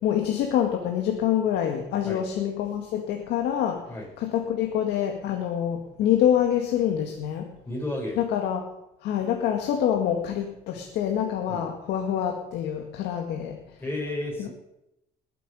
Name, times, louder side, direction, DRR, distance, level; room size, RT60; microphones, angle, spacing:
voice 1, 0.0-3.8 4.2-7.5 8.2-8.6 9.0-13.6 14.4-14.5, left 10 dB, 85° left, 3 dB, 1.9 m, -26 dB
voice 2, 7.6-8.2 11.5-11.7 13.8-14.5, left 1 dB, 15° left, -2 dB, 7.8 m, -32 dB
20.5 x 9.2 x 5.5 m, 0.85 s
cardioid pair, 110°, 17 cm